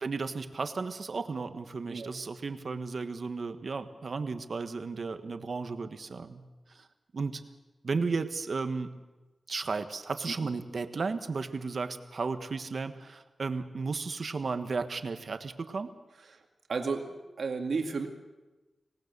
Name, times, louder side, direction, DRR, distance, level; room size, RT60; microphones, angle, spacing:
voice 1, 0.0-6.4 6.7-6.9 7.1-7.4 7.8-8.9 9.5-15.9, right 4 dB, 60° right, 9 dB, 1.4 m, -34 dB
voice 2, 16.7-17.0 17.4-18.1, right 4 dB, 75° right, 3 dB, 2.2 m, -32 dB
25.5 x 18.5 x 6.8 m, 1.2 s
wide cardioid pair, 95°, 0 cm